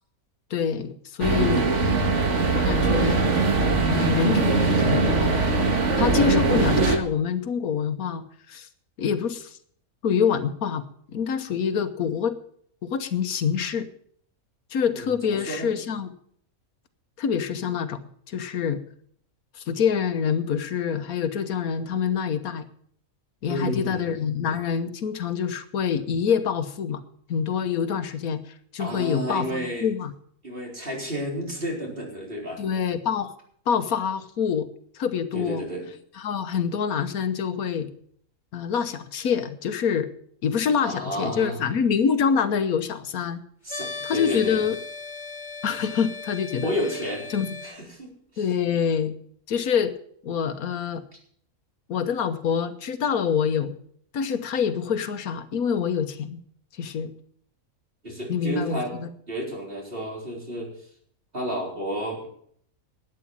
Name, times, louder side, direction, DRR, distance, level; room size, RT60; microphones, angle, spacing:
voice 1, 0.5-1.7 2.5-3.3 3.8-5.4 6.0-8.7 9.0-9.6 10.0-10.8 11.1-12.3 12.8-13.9 14.7-16.1 17.2-18.0 18.3-18.8 19.5-22.6 23.4-27.0 27.3-30.1 32.6-33.3 33.7-34.7 34.9-35.6 36.2-37.9 38.5-40.1 40.4-43.4 44.0-44.8 45.6-46.7 47.3-47.5 48.4-49.1 49.5-49.9 50.2-51.0 51.9-53.8 54.1-56.4 56.8-57.1 58.3-59.1, left 7 dB, 80° left, 10 dB, 1.4 m, -26 dB
sound 1, 1.2-7.0, right 3 dB, 55° right, 1.9 m, -21 dB
voice 2, 14.9-15.7 23.5-24.0 28.8-29.9 30.4-32.6 35.3-35.8 40.8-41.7 43.6-44.6 46.6-47.3 47.6-48.4 58.0-59.0 59.3-60.7 61.3-62.3, equal, 40° right, -1 dB, 4.5 m, -31 dB
sound 2, 43.7-47.7, left 4 dB, 30° left, 2.3 m, -37 dB
12.5 x 9.2 x 7.3 m, 0.63 s
omnidirectional pair, 1.5 m